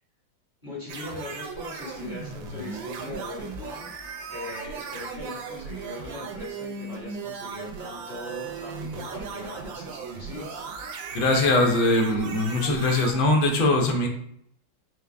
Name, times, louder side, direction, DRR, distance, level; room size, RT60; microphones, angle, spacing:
voice 1, 0.6-3.9 4.3-10.6, left 2 dB, 25° left, -8 dB, 1.1 m, -40 dB
sound 1, 0.9-13.1, right 5 dB, 75° right, 1.3 m, -37 dB
voice 2, 11.1-14.1, left 2 dB, 75° left, 2 dB, 1.5 m, -21 dB
4.8 x 2.1 x 3.3 m, 0.70 s
omnidirectional pair, 2.2 m